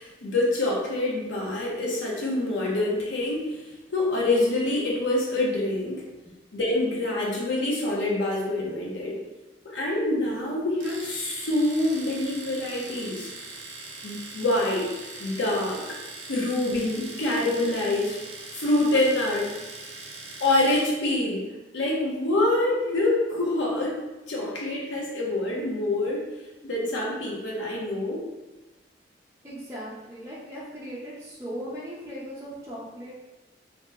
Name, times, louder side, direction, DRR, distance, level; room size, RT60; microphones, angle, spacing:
voice 1, 0.0-3.6 3.9-6.1 6.5-9.2 9.6-13.3 14.0-14.9 15.2-15.8 16.3-18.2 18.6-19.5 20.4-21.5 21.7-24.0 24.3-26.3 26.6-28.2, left 2 dB, 90° left, -3 dB, 0.7 m, -26 dB
Domestic sounds home sounds, 10.8-21.0, right 3 dB, 80° right, 0.5 m, -41 dB
voice 2, 29.4-33.1, equal, 15° right, -8 dB, 0.5 m, -38 dB
2.8 x 2.0 x 3.3 m, 1.1 s
head